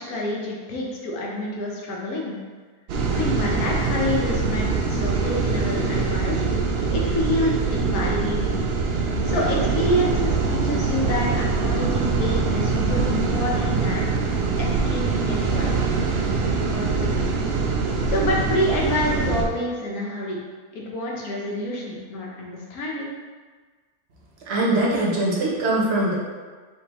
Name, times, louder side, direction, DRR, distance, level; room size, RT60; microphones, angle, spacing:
voice 1, 0.0-2.3 3.1-6.4 6.9-8.5 9.2-14.1 14.6-15.9 16.7-17.3 18.1-20.4 20.7-23.1, left 1 dB, 65° left, -2 dB, 1.3 m, -28 dB
sound 1, 2.9-19.4, right 4 dB, 90° right, 0.5 m, -23 dB
voice 2, 24.5-26.2, right 1 dB, 50° right, -4 dB, 1.0 m, -22 dB
4.4 x 3.8 x 3.0 m, 1.5 s
omnidirectional pair, 1.7 m